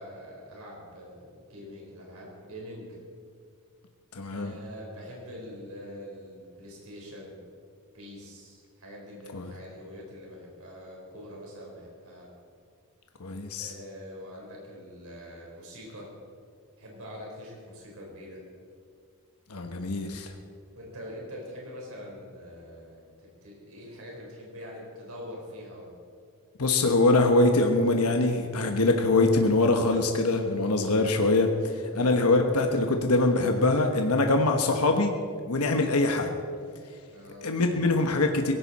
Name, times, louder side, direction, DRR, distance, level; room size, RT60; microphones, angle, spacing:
voice 1, 0.0-3.0 4.3-7.4 7.9-12.3 13.6-16.1 16.8-18.4 20.7-25.9 31.8-32.1 37.1-37.5, equal, 65° right, -2 dB, 4.3 m, -44 dB
voice 2, 4.1-4.5 9.3-9.5 13.2-13.7 19.5-20.3 26.6-31.5 31.9-35.1 35.5-36.3 37.4-38.5, left 2 dB, 80° left, 4 dB, 1.2 m, -23 dB
18.0 x 16.0 x 4.2 m, 2.2 s
head